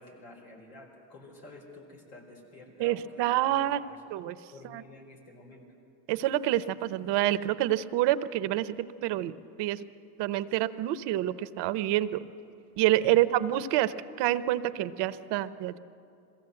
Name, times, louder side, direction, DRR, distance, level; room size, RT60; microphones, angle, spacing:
voice 1, 0.0-4.0 4.5-5.6 13.1-13.2, left 2 dB, 90° left, -1 dB, 4.5 m, -50 dB
voice 2, 2.8-3.8 4.1-4.4 4.7-4.8 6.1-9.8 10.2-12.2 12.8-15.8, right 14 dB, 60° right, 15 dB, 0.9 m, -27 dB
21.5 x 16.0 x 7.8 m, 2.6 s
hypercardioid pair, 75°, 47 cm